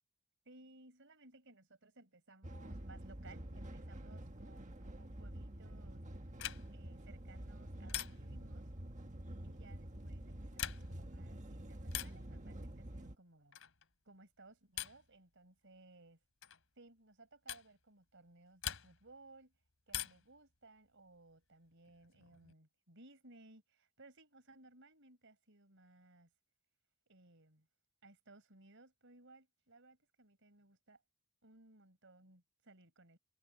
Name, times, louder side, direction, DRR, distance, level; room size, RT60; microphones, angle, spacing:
voice 1, 0.5-6.0 6.7-8.7 9.4-13.6 14.1-16.2 16.8-19.5 19.9-26.3 27.1-27.7 28.0-31.0 31.4-33.2, right 2 dB, 65° right, 5.3 m, -61 dB
sound 1, 2.4-13.2, right 1 dB, 35° right, 1.6 m, -48 dB
sound 2, 6.4-6.9 7.9-8.5 10.4-11.1 11.9-12.3 13.5-13.9 14.8-15.1 16.4-16.6 17.5-17.7 18.6-19.2 19.9-20.4 21.8-22.5, left 11 dB, 80° left, 3.1 m, -44 dB
head